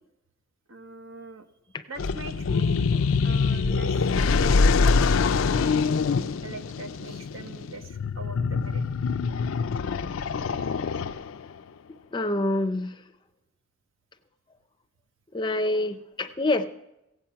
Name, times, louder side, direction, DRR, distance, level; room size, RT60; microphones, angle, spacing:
voice 1, 0.7-1.4 1.9-5.2 5.7-5.8 6.4-8.8, right 2 dB, 75° right, 7 dB, 1.0 m, -42 dB
sound 1, 2.0-11.5, left 4 dB, 75° left, 0.4 m, -24 dB
voice 2, 12.1-12.9 15.3-16.7, left 2 dB, 20° left, 9 dB, 0.5 m, -26 dB
16.0 x 8.6 x 5.7 m, 0.89 s
head